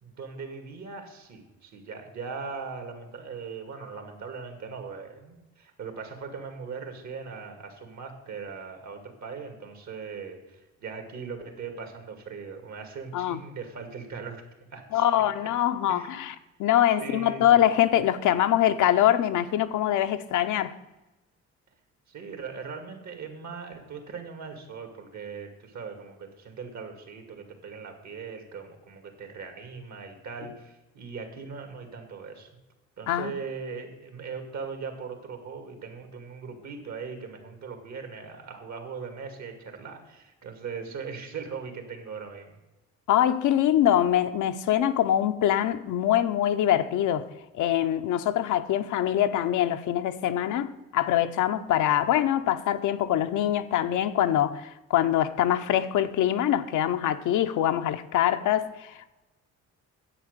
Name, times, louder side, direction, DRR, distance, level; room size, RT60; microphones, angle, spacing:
voice 1, 0.0-15.0 15.9-16.2 17.0-17.7 22.1-32.5 33.0-42.6, right 5 dB, 65° right, 2.4 m, -40 dB
voice 2, 14.9-16.3 16.6-20.7 33.1-33.3 43.1-47.3 47.6-59.1, left 11 dB, 80° left, 0.8 m, -24 dB
9.9 x 8.1 x 6.7 m
cardioid pair, 90°, 30 cm